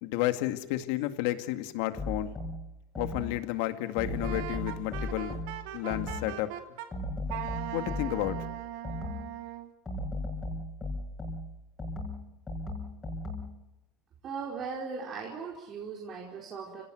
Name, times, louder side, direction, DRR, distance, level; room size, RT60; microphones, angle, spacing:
voice 1, 0.0-2.3 3.0-5.4 5.7-6.5 7.7-8.4, left 15 dB, 80° left, 8 dB, 2.1 m, -31 dB
sound 1, 2.0-3.5 4.0-6.4 6.9-9.4 9.9-13.6, left 1 dB, 15° left, 6.0 m, -37 dB
Wind instrument woodwind instrument, 4.2-6.9 7.3-9.7, right 12 dB, 80° right, 2.7 m, -39 dB
voice 2, 14.2-16.8, right 5 dB, 40° right, -1 dB, 4.6 m, -38 dB
30.0 x 18.0 x 9.3 m, 1.0 s
cardioid pair, 140°, 0 cm